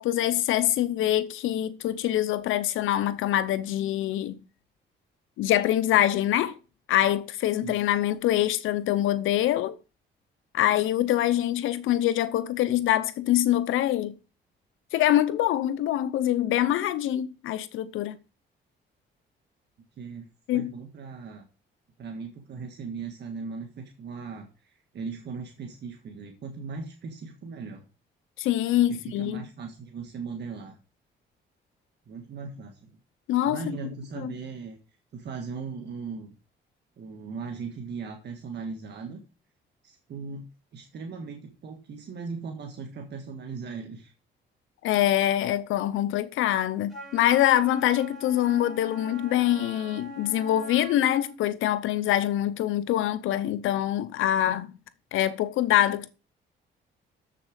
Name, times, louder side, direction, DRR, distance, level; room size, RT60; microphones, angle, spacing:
voice 1, 0.0-4.4 5.4-6.6 6.9-9.8 10.5-14.1 14.9-18.2 20.5-20.7 28.4-29.4 33.3-33.6 34.2-34.3 44.8-54.7 55.1-56.1, left 12 dB, 85° left, 0.7 m, -24 dB
voice 2, 20.0-21.4 22.0-27.8 28.7-30.8 32.1-32.9 33.4-34.8 35.1-36.4 37.0-39.2 39.8-40.5 40.7-44.1, right 5 dB, 60° right, 1.5 m, -38 dB
Wind instrument woodwind instrument, 46.9-51.4, right 1 dB, ahead, 5.9 m, -43 dB
7.3 x 6.6 x 5.0 m
cardioid pair, 90°, 20 cm